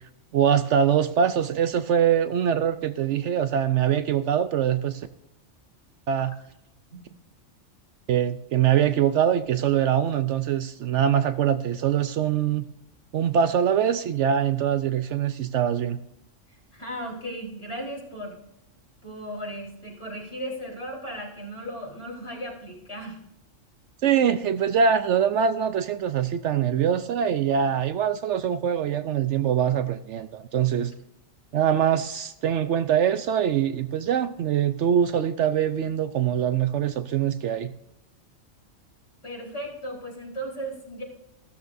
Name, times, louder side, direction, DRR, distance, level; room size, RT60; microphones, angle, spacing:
voice 1, 0.3-5.1 6.1-6.3 8.1-12.7 13.1-16.0 24.0-30.9 31.5-37.7, right 8 dB, 70° right, 12 dB, 0.9 m, -23 dB
voice 2, 16.5-18.4 19.0-23.2 39.2-41.0, equal, 25° left, -3 dB, 3.9 m, -36 dB
14.5 x 13.0 x 2.6 m, 0.84 s
omnidirectional pair, 1.3 m